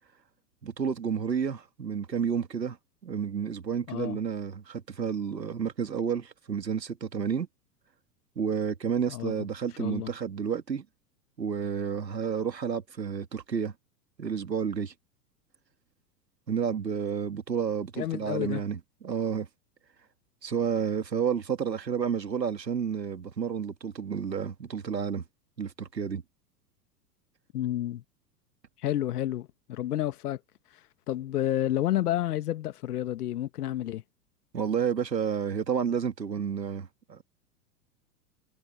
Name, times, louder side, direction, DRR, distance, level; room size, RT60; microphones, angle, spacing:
voice 1, 0.6-2.8 3.0-7.5 8.4-10.9 11.4-13.7 14.2-14.9 16.5-19.5 20.4-25.2 25.6-26.2 34.5-37.2, right 7 dB, 90° right, 2.1 m, -30 dB
voice 2, 3.9-4.2 9.1-9.5 9.8-10.1 18.0-18.6 27.5-28.0 28.8-30.4 30.7-34.0, left 13 dB, 70° left, 2.0 m, -30 dB
hypercardioid pair, 95°, 48 cm